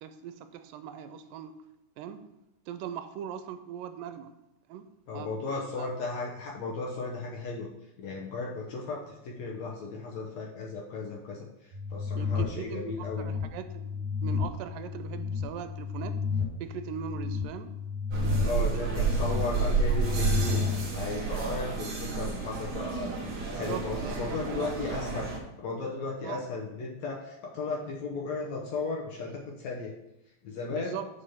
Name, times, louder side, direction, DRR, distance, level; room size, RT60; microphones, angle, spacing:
voice 1, 0.0-1.6 2.0-2.3 2.7-4.3 4.7-5.9 12.2-16.2 16.6-17.8 18.2-19.4 19.9-20.1 23.5-24.8 26.2-26.5 30.7-31.1, right 8 dB, 85° right, 10 dB, 2.2 m, -40 dB
voice 2, 5.1-7.7 8.0-13.3 18.4-20.6 20.9-23.1 23.6-25.3 25.6-29.9 30.4-31.0, left 3 dB, 70° left, -1 dB, 1.8 m, -35 dB
sound 1, 11.7-20.9, left 5 dB, 10° left, 2.6 m, -33 dB
sound 2, 18.1-25.4, right 4 dB, 45° right, 1.9 m, -30 dB
6.7 x 5.6 x 5.8 m, 0.92 s
omnidirectional pair, 4.0 m